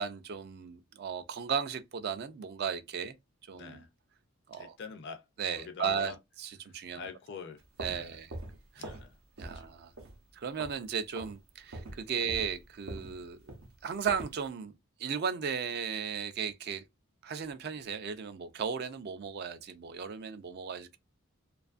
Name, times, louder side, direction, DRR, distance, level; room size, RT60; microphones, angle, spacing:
voice 1, 0.0-3.1 3.5-3.8 4.5-4.7 5.4-6.1 6.4-7.0 7.8-8.3 8.8-8.9 9.4-9.9 10.3-13.4 13.8-14.7 15.0-16.8 17.2-21.0, right 6 dB, 50° right, 0.4 m, -35 dB
voice 2, 3.5-3.9 4.5-5.2 5.6-6.2 6.6-8.2 8.8-9.2 9.4-9.7 12.2-12.3, left 5 dB, 55° left, 0.4 m, -46 dB
sound 1, 7.6-9.1 9.4-9.7 10.0-10.9 11.1-11.4 11.7-14.4, right 2 dB, 75° right, 0.7 m, -43 dB
2.5 x 2.3 x 2.4 m
head